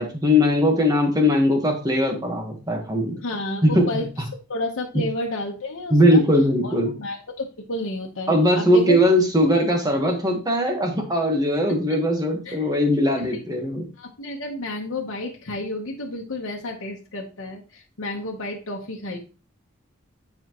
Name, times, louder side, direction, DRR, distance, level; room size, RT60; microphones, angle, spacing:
voice 1, 0.0-3.1 3.6-3.8 5.9-6.9 8.3-13.9, left 1 dB, 15° right, 2 dB, 1.3 m, -20 dB
voice 2, 3.2-4.1 4.5-6.2 6.6-9.0 12.4-12.7 13.2-13.3 14.0-19.2, left 2 dB, 75° left, -1 dB, 1.0 m, -31 dB
9.8 x 4.3 x 3.0 m, 0.35 s
head